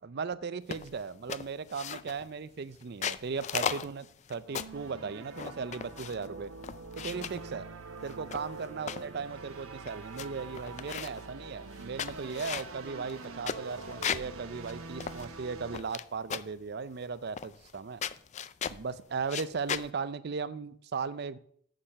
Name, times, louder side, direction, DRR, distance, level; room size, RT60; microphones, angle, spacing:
voice 1, 0.0-6.5 7.0-7.7 8.0-18.0 18.7-21.4, right 5 dB, 50° right, 0.5 m, -37 dB
sound 1, 0.7-1.0 1.3-2.3 2.8-4.8 5.3-6.3 6.6-7.4 8.1-9.1 9.6-9.7 9.9-10.3 10.5-11.2 11.7-14.3 14.7-14.8 15.0-16.0 16.3-16.6 17.4-17.8 18.0-18.8 19.2-19.9, left 8 dB, 35° left, 0.3 m, -37 dB
sound 2, 4.5-15.8, right 3 dB, 90° right, 1.0 m, -45 dB
7.3 x 6.7 x 6.4 m
head